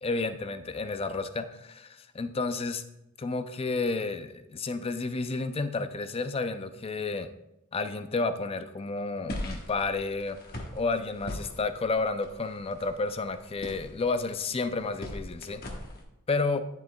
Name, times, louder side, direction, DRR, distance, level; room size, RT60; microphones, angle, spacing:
voice 1, 0.0-2.8 3.2-7.3 7.7-10.4 10.7-15.6 16.3-16.6, left 3 dB, 25° left, 10 dB, 0.4 m, -31 dB
sound 1, 9.3-16.0, left 1 dB, 45° left, 1.1 m, -41 dB
10.5 x 7.5 x 2.3 m, 0.89 s
head